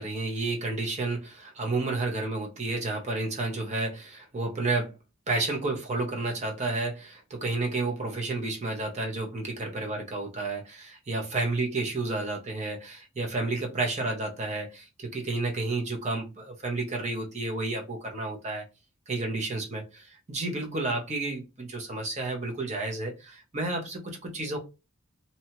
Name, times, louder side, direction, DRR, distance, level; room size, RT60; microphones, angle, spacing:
voice 1, 0.0-5.0 5.3-18.6 19.1-24.6, right 2 dB, 35° right, 0.7 m, -31 dB
2.8 x 2.2 x 2.9 m
head